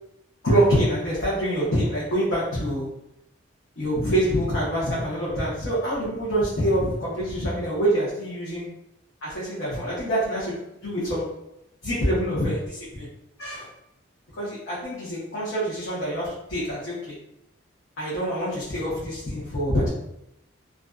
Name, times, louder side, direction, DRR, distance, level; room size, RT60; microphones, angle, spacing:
voice 1, 0.4-2.9 3.8-8.7 9.2-10.6 10.8-11.3 11.8-13.1 13.4-13.7 14.4-17.2 18.0-19.9, right 1 dB, 75° left, -9 dB, 0.8 m, -25 dB
2.4 x 2.2 x 2.4 m, 0.84 s
head